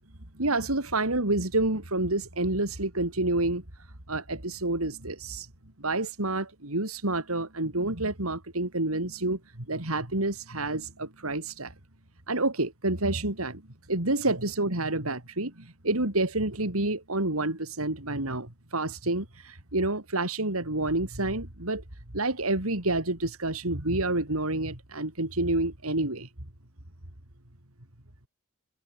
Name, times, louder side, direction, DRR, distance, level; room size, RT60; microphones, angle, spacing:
voice 1, 0.4-3.6 4.1-5.5 5.8-11.7 12.3-13.6 13.9-21.8 22.1-26.3, right 2 dB, 85° right, 4.3 m, -28 dB
head